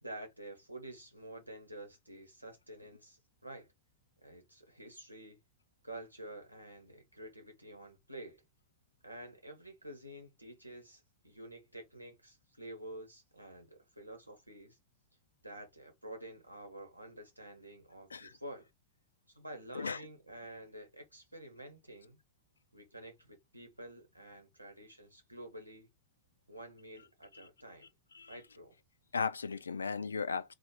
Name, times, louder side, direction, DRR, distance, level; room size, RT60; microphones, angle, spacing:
voice 1, 0.0-3.7 4.2-5.4 5.8-8.4 9.0-14.8 15.4-18.7 19.3-22.2 22.7-25.9 26.5-27.9 28.3-28.7, right 1 dB, 90° right, 1.3 m, -49 dB
voice 2, 29.1-30.5, left 5 dB, 75° left, 0.4 m, -36 dB
4.1 x 2.5 x 4.6 m
figure-of-eight pair, 90°, 0 cm